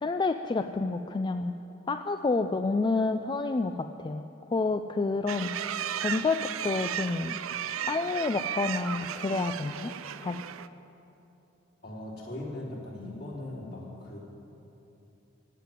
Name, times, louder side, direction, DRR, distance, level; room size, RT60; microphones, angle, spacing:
voice 1, 0.0-1.5 1.9-7.4 7.9-9.9 10.2-10.4, left 3 dB, 25° left, 8 dB, 0.3 m, -29 dB
sound 1, 5.3-10.7, right 9 dB, 85° right, 0.5 m, -35 dB
voice 2, 11.8-14.2, left 1 dB, 55° left, -5 dB, 3.7 m, -39 dB
16.0 x 7.4 x 9.1 m, 2.9 s
head